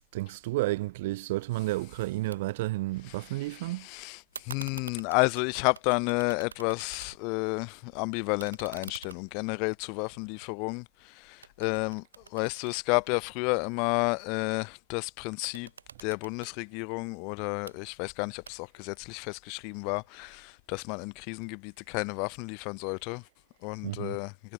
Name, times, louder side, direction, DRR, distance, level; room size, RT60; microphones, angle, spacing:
voice 1, 0.1-3.9 23.8-24.2, right 18 dB, 50° right, 1.5 m, -31 dB
sound 1, 2.3-2.4 2.7-3.5 4.3-7.4 7.8-11.0 11.4-13.7 15.3-16.5 17.4-17.8 18.5-18.9, right 6 dB, 90° right, 4.6 m, -48 dB
voice 2, 3.1-10.8 11.3-12.0 12.3-15.7 16.0-23.2 23.6-24.3, left 35 dB, 40° left, 2.0 m, -31 dB
hypercardioid pair, 125°, 0 cm